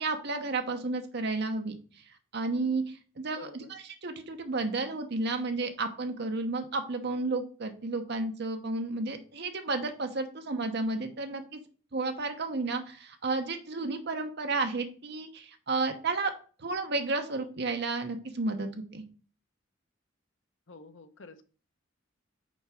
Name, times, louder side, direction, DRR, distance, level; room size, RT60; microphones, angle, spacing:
voice 1, 0.0-1.8 2.3-2.8 3.2-11.6 11.9-16.3 16.6-19.0, right 3 dB, 60° right, 6 dB, 0.9 m, -32 dB
voice 2, 3.4-3.7 20.7-21.4, left 3 dB, 75° left, 8 dB, 0.8 m, -48 dB
5.3 x 4.6 x 5.0 m, 0.40 s
head